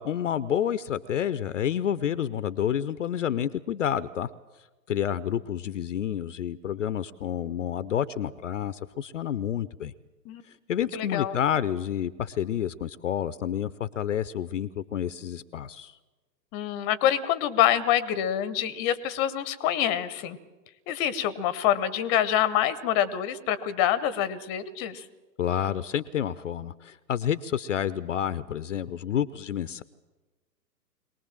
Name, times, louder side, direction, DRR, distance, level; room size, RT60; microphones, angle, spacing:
voice 1, 0.0-4.3 4.9-9.9 10.5-16.0 25.4-29.8, left 9 dB, 50° left, 16 dB, 0.7 m, -29 dB
voice 2, 10.9-11.4 16.5-20.4 20.9-25.0, left 11 dB, 20° left, 17 dB, 0.9 m, -26 dB
23.0 x 19.0 x 7.5 m, 1.2 s
figure-of-eight pair, 120°, 50 cm